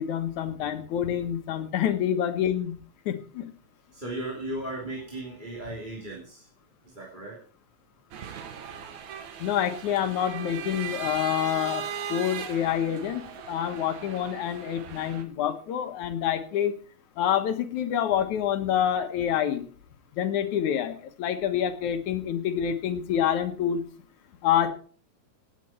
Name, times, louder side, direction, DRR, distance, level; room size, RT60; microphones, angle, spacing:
voice 1, 0.0-2.8 3.1-3.5 9.4-16.8 17.2-19.7 20.1-23.8 24.4-24.7, left 9 dB, 80° left, 7 dB, 2.7 m, -27 dB
voice 2, 3.9-6.5 6.9-7.4, right 1 dB, 15° right, -4 dB, 2.9 m, -36 dB
sound 1, 8.1-15.2, right 8 dB, 75° right, 2.7 m, -38 dB
17.5 x 9.1 x 4.4 m, 0.43 s
omnidirectional pair, 3.4 m